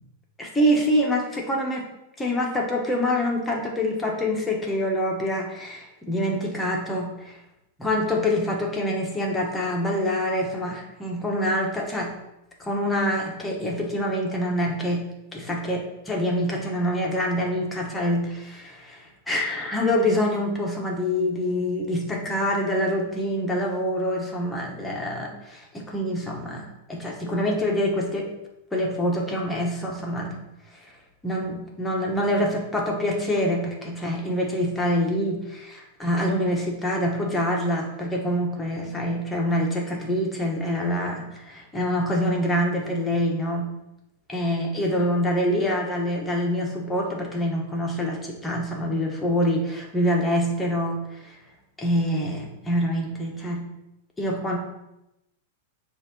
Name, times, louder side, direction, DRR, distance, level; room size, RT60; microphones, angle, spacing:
voice 1, 0.4-1.8 2.2-7.4 7.8-12.1 12.6-15.1 15.3-28.3 28.7-30.4 31.2-43.7 44.3-51.4 51.8-53.6 54.2-54.6, equal, 10° left, -1 dB, 1.0 m, -26 dB
6.9 x 2.6 x 5.3 m, 0.90 s
supercardioid pair, 155°, 0 cm